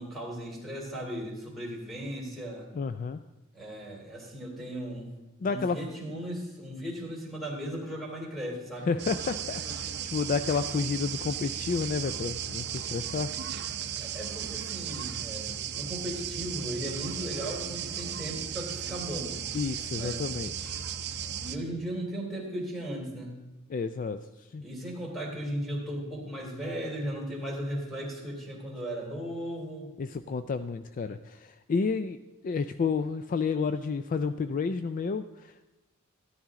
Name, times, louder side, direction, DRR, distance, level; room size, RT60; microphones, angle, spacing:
voice 1, 0.0-2.7 3.5-5.1 5.4-8.9 14.0-19.4 19.9-20.3 21.4-23.4 24.6-29.9, equal, ahead, -4 dB, 3.2 m, -36 dB
voice 2, 2.7-3.2 5.4-5.8 8.9-13.3 19.5-20.8 23.7-24.2 24.5-24.6 30.0-32.2 32.4-35.6, left 5 dB, 40° left, 11 dB, 0.3 m, -30 dB
sound 1, 9.0-21.6, right 8 dB, 55° right, 0.7 m, -36 dB
13.5 x 10.5 x 3.7 m, 1.1 s
head